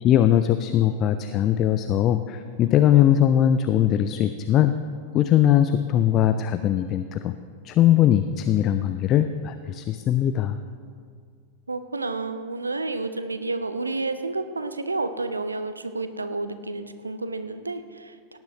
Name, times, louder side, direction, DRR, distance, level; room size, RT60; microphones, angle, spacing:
voice 1, 0.0-4.8 5.1-7.4 7.6-10.6, left 11 dB, 35° left, 10 dB, 0.4 m, -20 dB
voice 2, 11.7-18.4, right 3 dB, 80° right, 11 dB, 0.6 m, -30 dB
17.5 x 10.5 x 3.2 m, 2.1 s
figure-of-eight pair, 90°, 0 cm